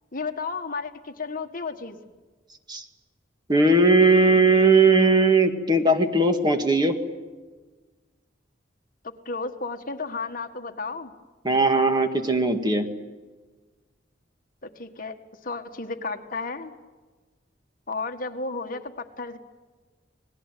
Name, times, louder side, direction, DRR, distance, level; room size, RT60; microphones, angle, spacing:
voice 1, 0.1-2.0 9.2-11.1 14.6-15.1 15.4-16.7 17.9-19.4, left 3 dB, 50° left, 6 dB, 1.7 m, -33 dB
voice 2, 3.5-7.0 11.4-12.9, right 3 dB, 25° right, 6 dB, 2.0 m, -19 dB
28.5 x 19.5 x 9.2 m, 1.3 s
head